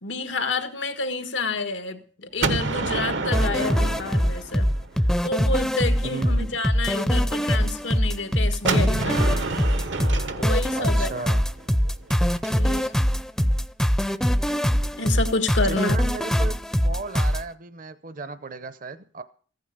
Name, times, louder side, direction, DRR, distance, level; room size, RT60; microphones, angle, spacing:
voice 1, 0.0-4.7 5.2-9.2 10.4-11.1 12.5-12.9 15.0-16.0, left 3 dB, 85° left, 1.7 m, -29 dB
Gunshot gunfire, 2.4-5.2 8.7-12.5, right 3 dB, 80° right, 1.2 m, -29 dB
sound 1, 3.3-17.4, equal, 5° left, 0.6 m, -23 dB
voice 2, 6.0-6.6 10.8-11.4 15.6-16.6 16.8-19.2, right 3 dB, 50° right, 0.8 m, -35 dB
15.0 x 9.4 x 6.7 m
head